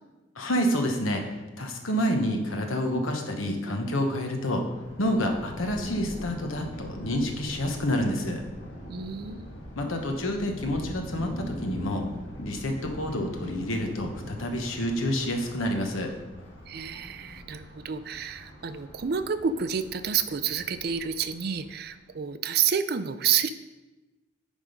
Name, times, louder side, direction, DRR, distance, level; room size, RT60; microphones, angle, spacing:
voice 1, 0.4-1.2 1.6-4.6 5.0-8.4 9.8-12.1 12.4-16.1, equal, 85° left, 3 dB, 1.1 m, -28 dB
Thunder, 4.6-22.0, equal, 65° left, 1.7 m, -42 dB
voice 2, 8.9-9.5 16.7-23.5, right 7 dB, 50° right, 11 dB, 0.4 m, -29 dB
10.0 x 3.7 x 5.1 m, 1.1 s
head